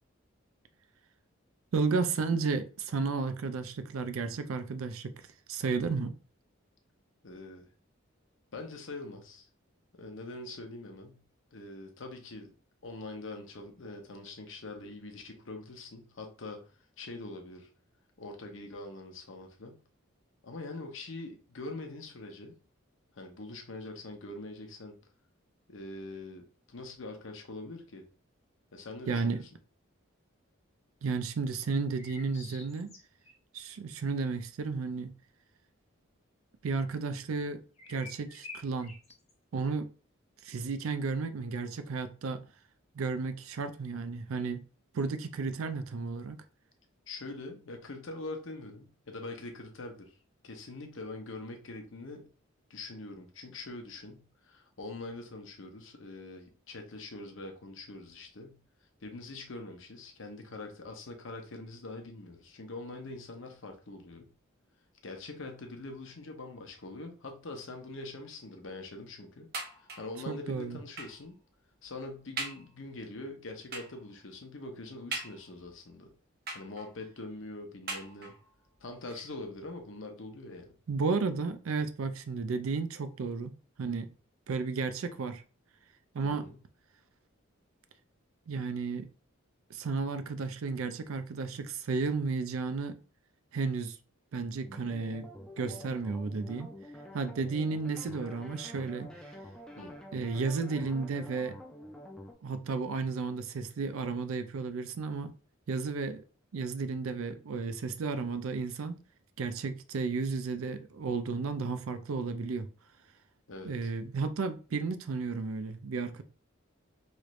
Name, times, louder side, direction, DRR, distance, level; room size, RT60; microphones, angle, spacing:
voice 1, 1.7-5.1 5.5-6.1 29.1-29.4 31.0-32.9 33.5-35.1 36.6-37.6 37.9-38.9 39.5-39.9 40.4-42.4 42.9-44.6 44.9-46.4 70.3-70.8 80.9-84.1 84.5-85.4 86.1-86.5 88.5-89.1 89.7-93.0 93.5-94.0 94.3-95.3 95.6-96.7 97.1-99.1 100.1-101.6 102.4-105.3 105.7-106.2 106.5-109.0 109.4-112.7 113.6-116.2, right 4 dB, 80° right, 0.4 m, -33 dB
voice 2, 7.2-7.7 8.5-9.5 10.0-11.2 11.5-12.5 12.8-16.7 17.0-17.7 18.2-19.8 20.4-22.6 23.1-25.0 25.7-28.1 28.7-29.5 47.1-50.1 50.4-52.3 52.7-58.6 59.0-64.3 65.0-69.5 69.8-71.4 71.8-76.1 76.5-78.3 78.8-80.8 86.2-86.6 99.8-99.9 113.5-113.9, left 2 dB, 65° left, 0.7 m, -43 dB
sound 1, 32.0-33.3 37.8-39.3, left 3 dB, 30° left, 0.8 m, -48 dB
sound 2, 69.5-70.2 71.0-71.3 71.8-71.9 72.4-72.7 73.7-74.1 75.1-75.7 76.5-77.1 77.9-78.5 79.4-79.5 79.8-79.9, right 3 dB, 45° right, 0.7 m, -40 dB
sound 3, 94.6-102.3, equal, 5° left, 0.4 m, -48 dB
3.2 x 2.5 x 3.1 m
head